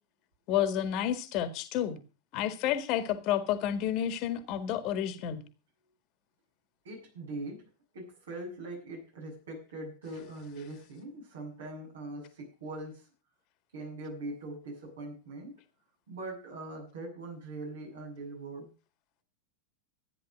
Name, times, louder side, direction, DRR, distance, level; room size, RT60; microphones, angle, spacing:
voice 1, 0.5-2.0 2.3-5.4, left 10 dB, 40° left, 11 dB, 1.8 m, -30 dB
voice 2, 6.8-7.7 7.9-13.0 13.7-15.6 16.1-18.7, right 2 dB, 65° right, 1 dB, 7.9 m, -41 dB
14.0 x 10.0 x 6.4 m, 0.35 s
figure-of-eight pair, 90°, 0 cm